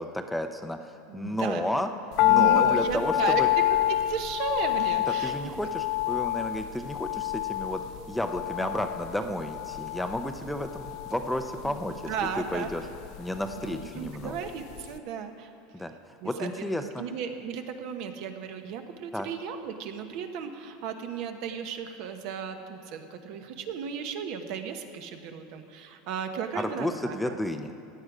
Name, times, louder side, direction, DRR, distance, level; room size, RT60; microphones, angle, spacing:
voice 1, 0.0-1.9 2.2-3.5 5.1-7.8 8.1-12.8 13.2-14.4 15.7-15.9 16.2-17.0 19.1-19.3 26.5-27.7, left 1 dB, 5° left, 6 dB, 0.6 m, -32 dB
voice 2, 1.1-1.7 2.3-3.4 4.0-5.3 11.6-11.7 12.1-12.7 13.6-15.5 16.2-27.4, right 7 dB, 60° right, 6 dB, 1.1 m, -35 dB
sound 1, 2.2-14.5 14.7-14.8, left 14 dB, 55° left, 0.3 m, -28 dB
16.0 x 9.5 x 5.0 m, 2.8 s
supercardioid pair, 135°, 0 cm